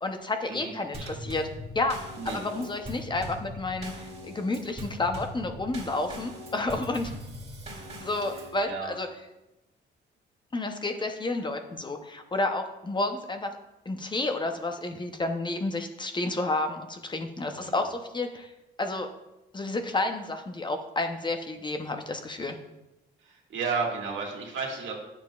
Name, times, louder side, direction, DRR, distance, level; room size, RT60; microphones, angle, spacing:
voice 1, 0.0-1.5 1.7-2.0 2.3-7.1 8.0-9.1 10.5-13.6 13.9-18.5 18.8-19.1 19.5-22.6, left 2 dB, 25° left, 6 dB, 0.7 m, -30 dB
Drum kit / Snare drum / Bass drum, 0.9-8.6, equal, 30° right, 2.1 m, -41 dB
voice 2, 2.2-2.6 8.3-8.9 17.5-17.8 23.2-24.9, right 4 dB, 75° right, -1 dB, 1.8 m, -33 dB
9.2 x 6.9 x 2.4 m, 0.95 s
cardioid pair, 90°, 20 cm